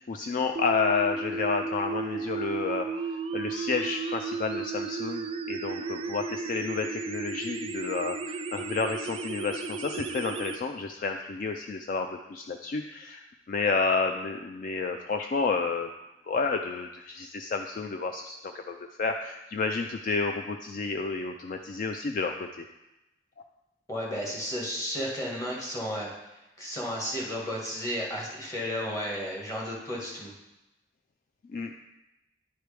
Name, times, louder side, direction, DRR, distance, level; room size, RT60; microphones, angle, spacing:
voice 1, 0.1-2.9 3.3-15.9 16.3-22.6 31.5-31.7, left 4 dB, 50° left, 5 dB, 0.3 m, -30 dB
sound 1, 0.6-10.6, right 3 dB, 30° right, 0.3 m, -34 dB
voice 2, 23.9-26.1 26.6-30.3, equal, 20° left, -3 dB, 1.6 m, -33 dB
10.0 x 4.7 x 3.4 m, 0.97 s
head